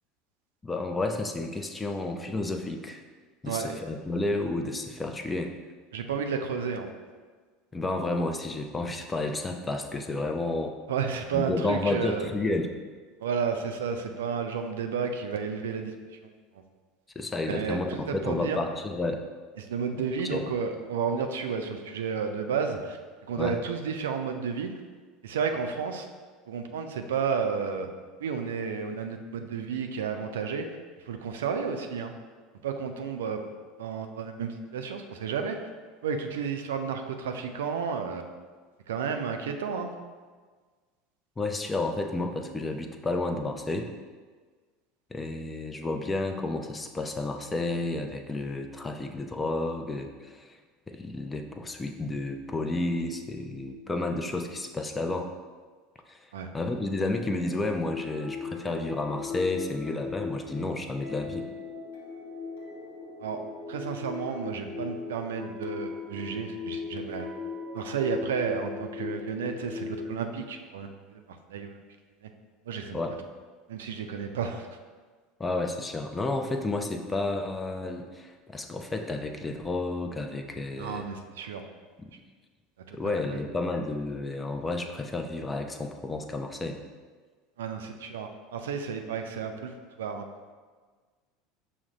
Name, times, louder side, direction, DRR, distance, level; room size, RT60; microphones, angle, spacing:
voice 1, 0.6-3.0 3.4-5.5 7.7-10.7 11.3-12.7 17.2-19.2 20.2-20.4 23.4-23.6 41.4-43.9 45.1-50.6 50.9-55.3 56.1-56.3 56.5-61.5 72.9-73.2 75.4-81.1 82.9-86.8, left 2 dB, 15° left, 5 dB, 0.4 m, -31 dB
voice 2, 3.5-3.8 5.9-6.9 10.9-12.3 13.2-15.9 16.2-16.3 17.5-18.6 19.6-23.0 23.3-24.7 25.2-26.1 26.5-27.9 28.2-30.7 31.1-32.1 32.6-33.4 33.8-35.6 36.0-38.3 38.9-39.9 56.3-56.5 63.2-63.4 63.7-67.3 67.7-71.2 71.5-71.8 72.7-73.0 73.7-74.7 80.8-81.6 82.9-83.4 87.6-89.7 90.0-90.3, right 6 dB, 75° right, 5 dB, 0.4 m, -32 dB
sound 1, 57.9-70.2, left 5 dB, 80° left, 0.9 m, -38 dB
5.9 x 2.1 x 3.8 m, 1.5 s
hypercardioid pair, 75°, 0 cm